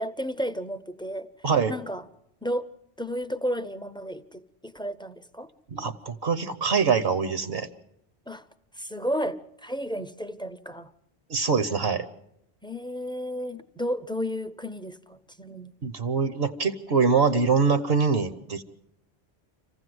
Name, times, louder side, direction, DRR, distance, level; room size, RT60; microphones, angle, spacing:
voice 1, 0.0-2.0 2.4-2.7 3.0-5.5 8.3-8.5 8.7-10.9 12.6-15.7, equal, 5° left, 0.5 m, -33 dB
voice 2, 5.7-7.7 11.3-12.1 15.8-18.6, right 5 dB, 65° right, 1.2 m, -24 dB
26.5 x 15.5 x 7.8 m
omnidirectional pair, 1.1 m